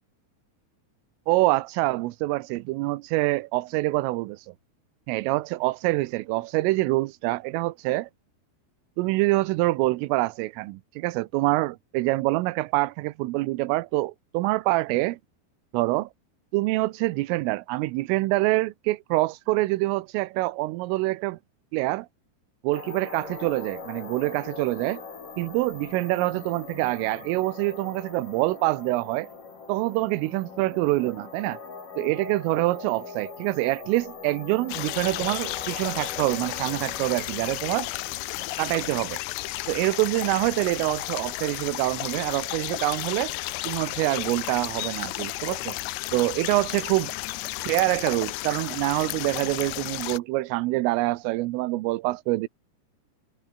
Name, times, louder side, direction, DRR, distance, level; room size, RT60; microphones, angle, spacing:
voice 1, 1.3-4.5 5.1-8.1 9.0-15.2 15.7-16.1 16.5-21.4 21.7-22.1 22.6-25.0 25.4-29.3 29.7-31.6 32.0-37.9 38.6-39.2 39.7-43.3 43.7-45.8 46.1-47.1 47.7-52.5, right 20 dB, 85° right, 3.5 m, -25 dB
sound 1, 22.7-39.1, left 4 dB, 40° left, 7.0 m, -42 dB
sound 2, 34.7-50.2, left 19 dB, 85° left, 2.4 m, -33 dB
omnidirectional pair, 5.8 m